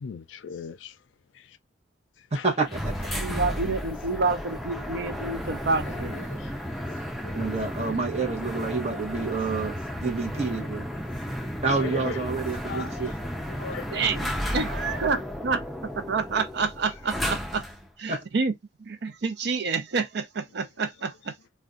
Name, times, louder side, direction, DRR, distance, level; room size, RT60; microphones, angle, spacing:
voice 1, 0.0-0.9 2.4-2.5 3.3-3.4 6.3-7.0 7.2-7.5 11.8-12.2 12.6-13.0 13.5-14.1, left 6 dB, 85° left, 0.4 m, -38 dB
voice 2, 2.3-3.2 7.4-10.9 11.6-13.1 18.1-18.2, right 4 dB, 35° right, 0.9 m, -28 dB
sound 1, 2.7-17.9, equal, ahead, 0.4 m, -33 dB
voice 3, 3.1-6.3 13.9-17.7 18.0-18.5 18.8-21.3, right 4 dB, 60° right, 0.5 m, -28 dB
2.5 x 2.2 x 3.7 m
head